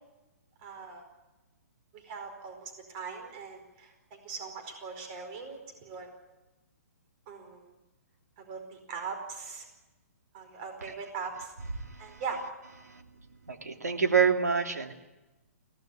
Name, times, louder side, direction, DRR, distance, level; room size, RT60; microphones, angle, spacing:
voice 1, 0.6-1.0 1.9-6.1 7.3-7.7 8.4-9.6 10.3-11.5 12.0-12.4, right 5 dB, 40° right, 5 dB, 4.8 m, -40 dB
voice 2, 11.8-12.2 12.8-13.0 13.5-14.9, right 6 dB, 85° right, 4 dB, 2.7 m, -27 dB
22.5 x 17.5 x 9.3 m, 1.1 s
hypercardioid pair, 135°, 9 cm